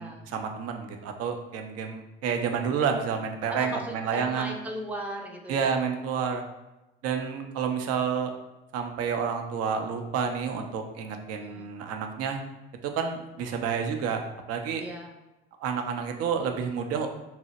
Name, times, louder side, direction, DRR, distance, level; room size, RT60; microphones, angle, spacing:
voice 1, 0.0-4.5 5.5-6.4 7.0-8.3 8.7-12.4 12.8-14.2 14.5-14.8 15.6-17.1, right 6 dB, 55° right, 4 dB, 0.5 m, -29 dB
voice 2, 3.5-5.8 11.3-11.7 14.8-15.1, right 1 dB, 5° right, 0 dB, 0.6 m, -37 dB
2.8 x 2.0 x 4.0 m, 1.0 s
hypercardioid pair, 70°, 30 cm